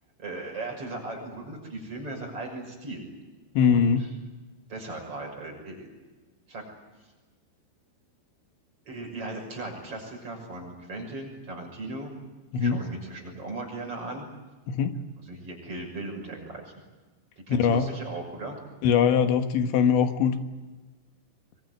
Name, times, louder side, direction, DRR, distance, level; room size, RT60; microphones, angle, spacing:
voice 1, 0.2-3.1 3.6-4.1 4.7-5.9 6.5-6.6 8.9-12.1 12.5-14.3 15.3-16.8 17.5-18.6, right 2 dB, 30° right, 1 dB, 7.0 m, -37 dB
voice 2, 3.6-4.1 12.5-12.8 14.7-15.0 17.5-17.9 18.8-20.4, left 7 dB, 75° left, 7 dB, 3.6 m, -22 dB
24.0 x 23.5 x 9.4 m, 1.2 s
omnidirectional pair, 5.5 m